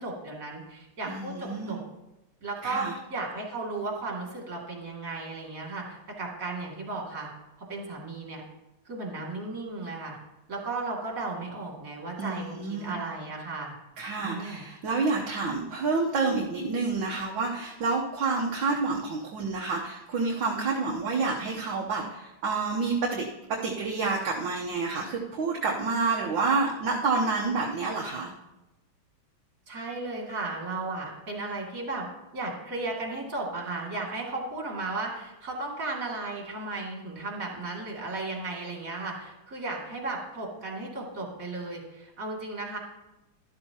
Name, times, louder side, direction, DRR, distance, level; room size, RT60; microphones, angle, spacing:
voice 1, 0.0-1.8 2.4-7.3 7.7-8.4 8.8-10.2 10.5-13.7 14.2-14.6 29.7-32.1 32.3-42.8, right 3 dB, 40° right, -2 dB, 2.9 m, -35 dB
voice 2, 1.1-1.8 2.6-3.0 12.2-13.0 14.0-28.3, right 4 dB, 65° right, -2 dB, 1.7 m, -29 dB
12.5 x 12.5 x 2.9 m, 0.97 s
omnidirectional pair, 2.3 m